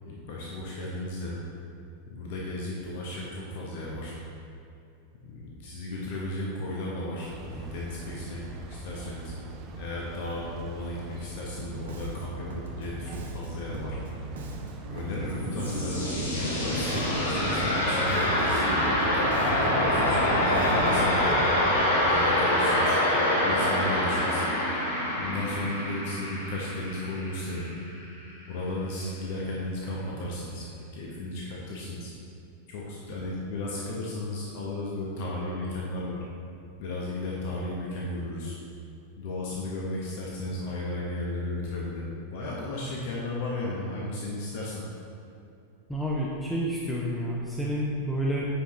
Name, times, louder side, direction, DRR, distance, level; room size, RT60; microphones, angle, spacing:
voice 1, 0.0-1.4 2.1-4.2 5.2-9.3 9.8-14.0 14.9-18.8 19.4-21.5 22.1-23.0 23.4-24.4 25.2-27.8 28.4-32.1 32.7-36.2 36.8-38.6 39.2-44.8, left 2 dB, 50° left, -4 dB, 1.0 m, -34 dB
sound 1, 7.3-22.5, right 3 dB, 35° right, 0.6 m, -42 dB
Bass guitar, 11.6-21.5, right 2 dB, 60° right, 0.9 m, -39 dB
sound 2, 15.1-27.9, left 1 dB, 70° left, 1.7 m, -26 dB
voice 2, 45.9-48.5, equal, 5° left, -5 dB, 0.8 m, -29 dB
9.9 x 5.1 x 3.1 m, 2.7 s
figure-of-eight pair, 90°, 0 cm